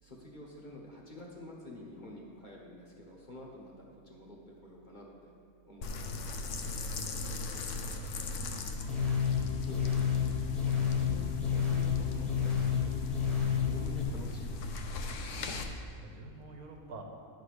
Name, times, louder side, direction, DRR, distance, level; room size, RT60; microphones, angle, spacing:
voice 1, 0.0-5.3 5.6-6.3 9.6-10.3 10.6-14.9, left 1 dB, 35° left, -2 dB, 1.1 m, -49 dB
sound 1, 5.8-15.6, left 2 dB, 60° left, 1.0 m, -38 dB
voice 2, 6.9-8.3 16.0-17.0, right 3 dB, 75° right, 2 dB, 1.5 m, -50 dB
sound 2, 8.9-14.0, left 8 dB, ahead, 1.1 m, -30 dB
11.0 x 4.1 x 6.5 m, 2.3 s
omnidirectional pair, 1.6 m